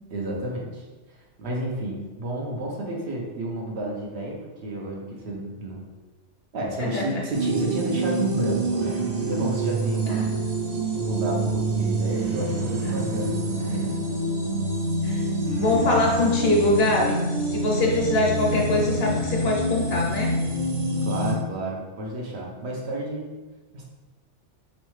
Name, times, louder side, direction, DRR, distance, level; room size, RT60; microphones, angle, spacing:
voice 1, 0.1-0.8 1.4-5.8 6.5-10.3 10.9-14.0 21.0-23.3 23.7-23.8, right 1 dB, 65° right, -2 dB, 1.0 m, -31 dB
voice 2, 6.8-7.3 10.1-10.3 15.0-15.3 15.6-17.2 17.4-20.4, left 2 dB, 60° left, -1 dB, 0.9 m, -23 dB
sound 1, 7.3-21.3, right 2 dB, 45° right, 0.6 m, -26 dB
3.5 x 3.2 x 3.1 m, 1.2 s
omnidirectional pair, 1.2 m